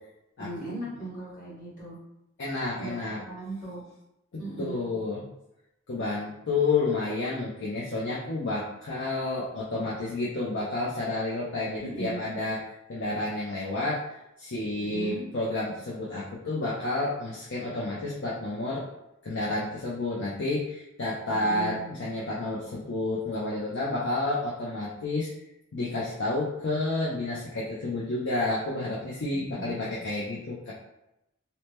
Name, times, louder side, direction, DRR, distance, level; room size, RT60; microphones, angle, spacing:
voice 1, 0.4-2.0 2.8-3.8 4.4-4.8 11.8-12.2 14.8-15.2 21.3-21.9 29.3-29.9, right 2 dB, 40° left, -8 dB, 1.3 m, -38 dB
voice 2, 2.4-3.2 4.6-5.2 5.9-12.6 12.9-14.0 14.4-18.8 19.2-25.3 25.7-30.7, left 2 dB, 55° left, -6 dB, 0.5 m, -30 dB
2.7 x 2.1 x 3.2 m, 0.87 s
head